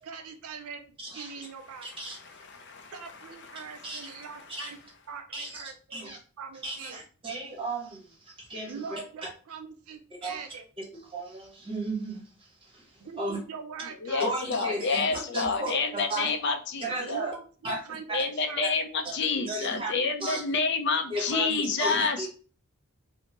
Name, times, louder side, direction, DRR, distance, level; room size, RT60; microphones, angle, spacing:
voice 1, 0.0-0.8 1.1-1.9 2.9-4.8 5.1-7.0 8.7-10.6 13.0-14.3 17.0-18.6, right 5 dB, 85° right, 6 dB, 0.5 m, -42 dB
voice 2, 1.0-1.5 1.8-2.2 3.8-4.0 4.5-4.7 5.3-5.6 5.9-6.2 6.6-9.0 10.2-10.4 11.1-13.4 14.2-15.7 16.1-16.3 16.8-17.3 17.6-17.8 19.0-19.2 19.5-19.9 20.2-20.4 21.1-22.3, right 2 dB, 25° right, -1 dB, 0.8 m, -35 dB
voice 3, 2.5-2.9 14.0-17.2 18.1-22.2, left 4 dB, 50° left, 7 dB, 0.4 m, -28 dB
2.8 x 2.0 x 3.1 m, 0.39 s
head